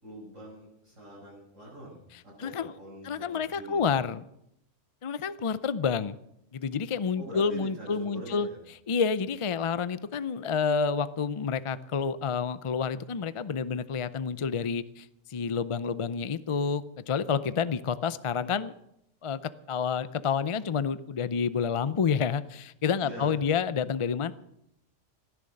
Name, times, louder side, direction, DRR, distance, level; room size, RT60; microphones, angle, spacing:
voice 1, 0.0-4.0 7.2-8.6 23.0-23.3, equal, 80° right, -7 dB, 6.7 m, -44 dB
voice 2, 2.4-2.7 3.0-4.3 5.0-6.2 6.5-8.5 8.9-18.7 19.2-24.3, left 6 dB, 50° left, 15 dB, 0.4 m, -29 dB
17.0 x 11.0 x 6.4 m, 0.79 s
omnidirectional pair, 1.3 m